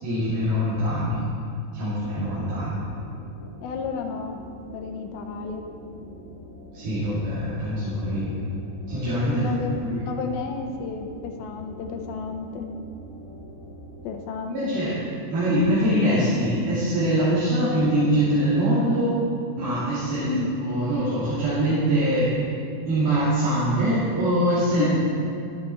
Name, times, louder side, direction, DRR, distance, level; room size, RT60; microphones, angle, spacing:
voice 1, 0.0-1.2 1.7-2.8 6.7-8.3 8.9-9.4 9.8-10.0 14.5-14.9 15.3-19.2 19.6-20.3 20.6-22.3 22.9-25.0, right 1 dB, 75° right, -12 dB, 4.5 m, -23 dB
sound 1, 1.9-14.1, right 1 dB, 20° left, 2.5 m, -43 dB
voice 2, 3.6-4.4 4.7-5.6 8.1-8.2 9.3-12.7 14.0-14.5 20.2-20.5 24.8-24.9, left 5 dB, 80° left, 4 dB, 2.6 m, -31 dB
13.5 x 10.0 x 4.2 m, 2.4 s
omnidirectional pair, 4.5 m